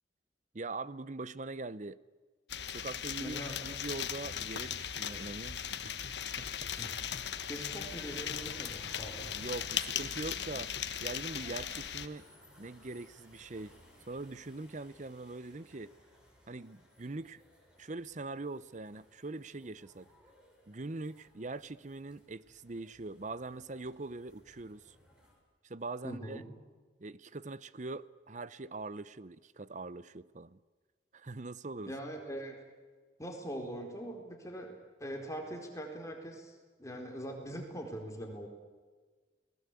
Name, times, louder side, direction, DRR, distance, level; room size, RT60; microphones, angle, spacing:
voice 1, 0.5-2.0 2.7-6.0 6.4-6.7 9.3-10.7 11.0-12.3 12.6-13.7 14.1-15.9 16.5-17.4 17.8-20.1 20.7-25.0 25.6-26.4 27.0-30.6 31.1-31.9, right 3 dB, 40° right, 17 dB, 0.8 m, -42 dB
sound 1, 2.5-12.1, left 9 dB, 70° left, 1.4 m, -38 dB
voice 2, 3.2-3.7 6.8-7.0 7.5-9.3 26.0-26.4 31.9-32.6 33.2-38.5, equal, 15° left, 2 dB, 4.4 m, -42 dB
sound 2, 5.7-25.3, equal, 5° right, 6.8 m, -61 dB
29.5 x 20.0 x 8.4 m, 1.4 s
head